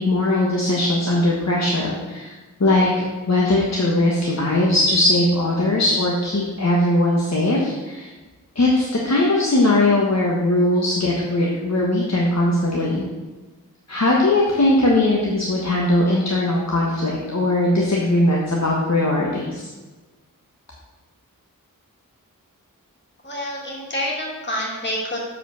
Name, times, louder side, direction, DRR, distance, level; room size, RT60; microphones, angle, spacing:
voice 1, 0.0-2.3 2.6-8.1 8.5-13.0 13.9-19.7, left 1 dB, 50° left, -3 dB, 1.5 m, -19 dB
voice 2, 23.2-25.2, left 1 dB, 30° left, -4 dB, 2.8 m, -27 dB
7.3 x 5.1 x 6.9 m, 1.2 s
wide cardioid pair, 60°, 34 cm